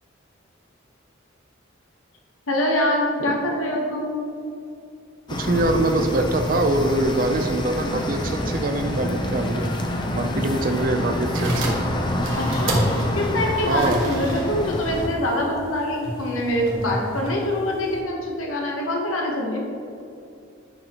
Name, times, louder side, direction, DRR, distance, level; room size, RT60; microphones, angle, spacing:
voice 1, 2.5-4.2 12.4-12.8 13.1-19.6, left 1 dB, 90° left, -1 dB, 1.0 m, -24 dB
sound 1, 5.3-15.1, left 1 dB, 20° left, 0.5 m, -27 dB
voice 2, 5.3-9.7 10.1-11.8 13.7-14.0, right 2 dB, 45° right, 6 dB, 0.4 m, -24 dB
sound 2, 11.2-18.0, right 1 dB, 80° right, 1.3 m, -30 dB
9.3 x 5.8 x 2.9 m, 2.6 s
head